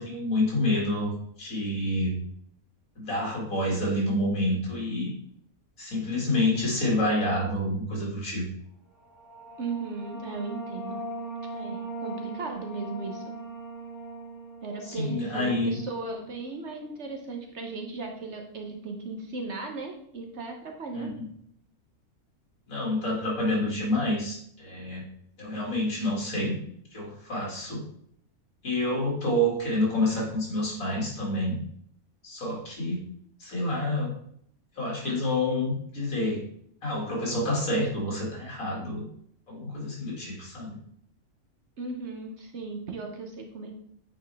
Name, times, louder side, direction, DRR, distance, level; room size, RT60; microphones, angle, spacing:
voice 1, 0.0-2.2 3.0-5.1 5.8-8.5 14.8-15.8 20.9-21.1 22.7-25.0 25.4-26.6 26.9-27.8 28.6-31.6 32.2-33.0 33.4-34.1 34.8-36.4 36.8-39.0 39.5-40.8, left 1 dB, 65° left, -3 dB, 2.7 m, -28 dB
sound 1, 9.0-16.2, right 2 dB, 30° left, 3.4 m, -40 dB
voice 2, 9.6-11.0 11.5-13.4 14.6-21.2 41.8-43.8, right 3 dB, 55° right, 3 dB, 1.1 m, -36 dB
8.6 x 4.2 x 3.4 m, 0.67 s
omnidirectional pair, 1.5 m